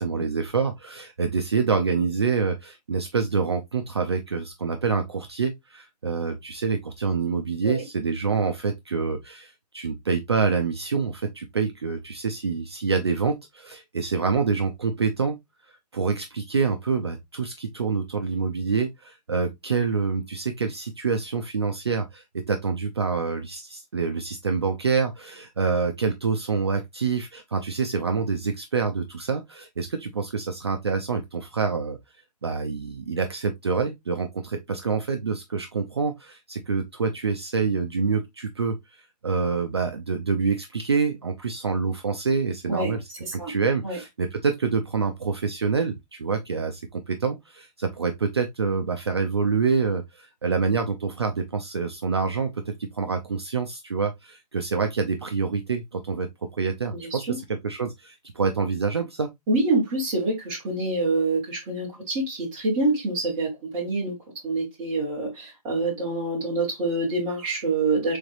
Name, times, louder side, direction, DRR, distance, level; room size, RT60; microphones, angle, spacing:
voice 1, 0.0-15.4 15.9-32.0 32.4-43.0 43.3-59.3, right 5 dB, 40° right, 0.4 m, -26 dB
voice 2, 43.2-43.5 43.8-44.0 56.9-57.4 59.5-64.2 64.4-68.2, right 2 dB, 5° right, 0.7 m, -26 dB
4.0 x 3.2 x 2.5 m
hypercardioid pair, 180°, 21 cm